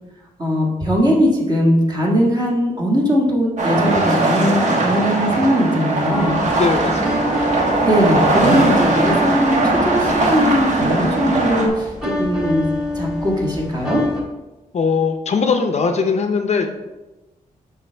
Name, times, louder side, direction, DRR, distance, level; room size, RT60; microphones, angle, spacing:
voice 1, 0.4-6.3 7.8-12.6 12.9-14.0, equal, 25° right, -2 dB, 1.6 m, -19 dB
sound 1, 3.6-11.7, right 2 dB, 55° right, 1.3 m, -19 dB
sound 2, 6.1-14.2, equal, 5° right, 1.7 m, -27 dB
voice 2, 6.6-7.3 14.7-16.7, left 5 dB, 45° left, 6 dB, 0.6 m, -20 dB
11.0 x 3.9 x 3.3 m, 1.1 s
wide cardioid pair, 160°, 15 cm